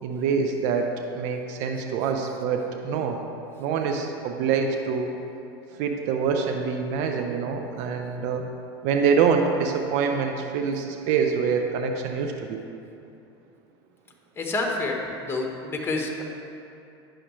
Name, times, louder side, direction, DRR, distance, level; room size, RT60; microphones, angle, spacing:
voice 1, 0.0-3.2 3.6-5.1 5.8-8.4 8.8-12.6, right 6 dB, 60° right, 4 dB, 0.7 m, -25 dB
voice 2, 14.4-16.2, left 2 dB, 15° left, 1 dB, 1.2 m, -28 dB
9.8 x 6.4 x 3.2 m, 2.7 s
hypercardioid pair, 95°, 14 cm